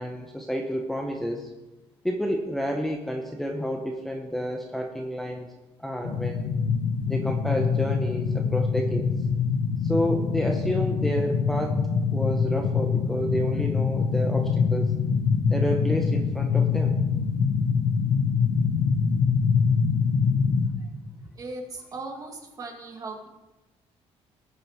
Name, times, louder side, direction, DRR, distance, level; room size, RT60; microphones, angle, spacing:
voice 1, 0.0-1.5 2.0-5.5 5.8-6.5 7.1-9.1 9.8-15.2 15.5-17.0, equal, ahead, 2 dB, 0.8 m, -30 dB
sound 1, 6.0-20.7, left 5 dB, 90° left, 1.2 m, -24 dB
voice 2, 21.4-23.3, right 3 dB, 35° right, 1 dB, 1.9 m, -38 dB
18.5 x 7.5 x 3.6 m, 1.1 s
cardioid pair, 160°, 11 cm